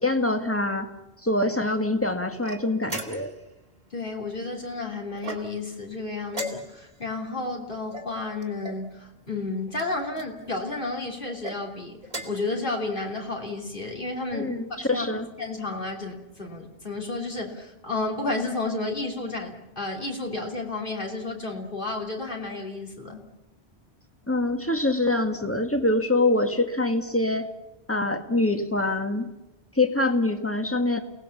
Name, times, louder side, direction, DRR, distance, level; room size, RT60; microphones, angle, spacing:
voice 1, 0.0-0.9 1.2-3.3 14.3-15.3 24.3-27.5 27.9-29.3 29.8-31.0, left 2 dB, 10° left, 6 dB, 1.8 m, -24 dB
sound 1, 2.4-3.5 5.2-5.8 6.3-7.0 7.9-8.9 9.7-10.3 11.3-11.6 12.0-12.5, right 1 dB, 35° right, 2.6 m, -37 dB
voice 2, 3.9-14.5 14.9-23.3, left 3 dB, 50° left, 0 dB, 3.2 m, -32 dB
29.5 x 18.5 x 7.1 m, 0.97 s
omnidirectional pair, 1.1 m